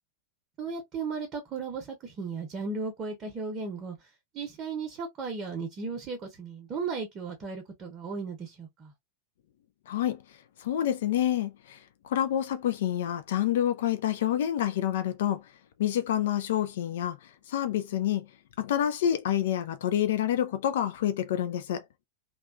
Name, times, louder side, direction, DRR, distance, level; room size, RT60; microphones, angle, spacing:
voice 1, 0.6-8.9, right 4 dB, 30° right, 0.8 m, -36 dB
voice 2, 9.9-10.2 10.6-11.8 12.0-15.4 15.8-17.2 17.5-18.3 18.6-21.8, left 11 dB, 55° left, 0.4 m, -28 dB
2.6 x 2.2 x 2.4 m
figure-of-eight pair, 90°, 0 cm